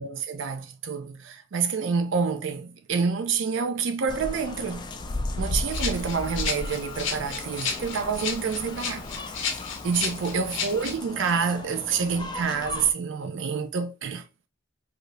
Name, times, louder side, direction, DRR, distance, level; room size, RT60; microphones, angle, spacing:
voice 1, 0.0-4.9 5.4-9.1 9.8-14.2, right 5 dB, 65° right, 0.4 m, -28 dB
sound 1, 4.1-12.9, left 2 dB, 20° left, 0.3 m, -35 dB
Rattle (instrument), 5.7-11.0, left 6 dB, 70° left, 0.7 m, -33 dB
2.7 x 2.4 x 3.1 m
head